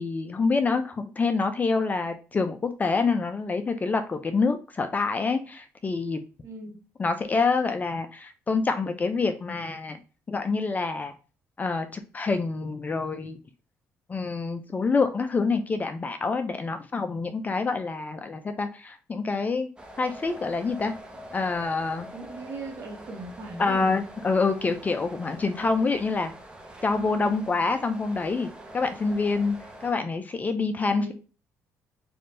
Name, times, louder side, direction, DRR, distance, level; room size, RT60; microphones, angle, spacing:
voice 1, 0.0-6.2 7.0-10.0 10.3-11.1 11.6-13.4 14.1-19.7 20.0-20.9 21.3-22.1 23.6-26.3 26.8-28.5 28.7-31.1, left 4 dB, 25° left, 0.4 m, -26 dB
voice 2, 6.4-6.8 22.1-24.0 26.9-27.4 30.7-31.1, right 2 dB, 50° right, 1.2 m, -39 dB
sound 1, 19.8-29.9, right 1 dB, 15° right, 0.6 m, -45 dB
3.4 x 2.6 x 2.5 m
cardioid pair, 95°, 6 cm